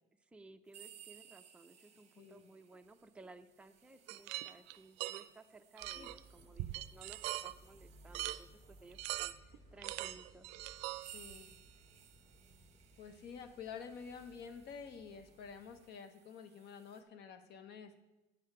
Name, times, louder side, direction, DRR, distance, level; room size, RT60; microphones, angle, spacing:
voice 1, 0.2-10.5, right 3 dB, 5° right, 5 dB, 0.5 m, -58 dB
sound 1, 0.7-9.1 9.9-10.0 10.6-17.0, right 9 dB, 35° right, 0.9 m, -62 dB
voice 2, 2.2-2.5 5.9-6.1 11.0-11.5 13.0-17.9, left 6 dB, 60° left, 9 dB, 1.0 m, -49 dB
Baoding Balls, 4.1-5.3 5.8-6.2 6.6-7.5 8.1-8.4 8.9-9.6 9.8-11.5, right 16 dB, 75° right, 0.4 m, -42 dB
sound 2, 5.8-15.8, right 1 dB, 35° left, 2.1 m, -62 dB
9.3 x 6.5 x 4.8 m, 1.0 s
supercardioid pair, 100°, 19 cm